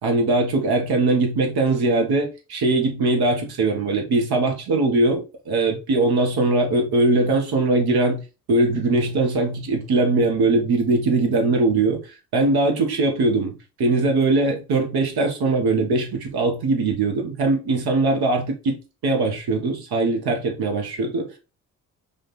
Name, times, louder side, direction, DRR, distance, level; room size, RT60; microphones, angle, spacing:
voice 1, 0.0-8.2 8.5-12.0 12.3-18.8 19.0-21.4, right 2 dB, 55° right, 1.5 m, -21 dB
5.2 x 2.6 x 3.8 m
hypercardioid pair, 45°, 45 cm